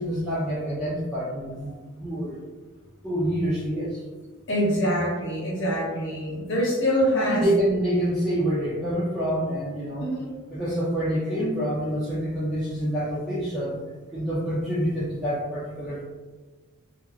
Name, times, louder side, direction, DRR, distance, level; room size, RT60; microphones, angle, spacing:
voice 1, 0.0-2.4 3.0-4.0 7.2-10.1 10.5-13.8 14.1-16.0, equal, 5° right, -11 dB, 0.5 m, -27 dB
voice 2, 4.5-7.5 10.0-10.3, equal, 55° left, -5 dB, 1.0 m, -25 dB
2.8 x 2.5 x 2.4 m, 1.3 s
head